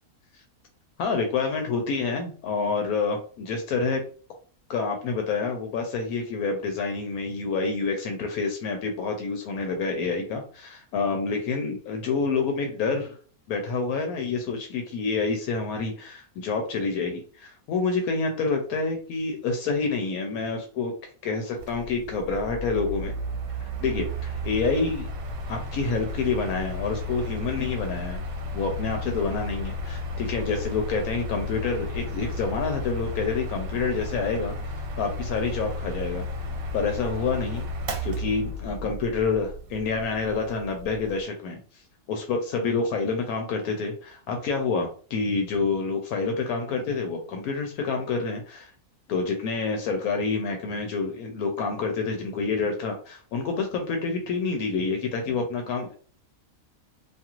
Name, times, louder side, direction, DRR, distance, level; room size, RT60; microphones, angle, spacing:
voice 1, 1.0-4.0 4.7-13.2 13.5-20.9 21.2-23.1 23.6-25.1 25.5-28.2 28.5-36.3 36.7-37.7 38.0-41.6 42.1-48.7 49.1-55.9, left 4 dB, 80° left, 4 dB, 1.0 m, -28 dB
Mechanical fan, 21.6-41.2, left 1 dB, 80° right, 1.0 m, -33 dB
2.6 x 2.4 x 2.9 m, 0.42 s
omnidirectional pair, 1.5 m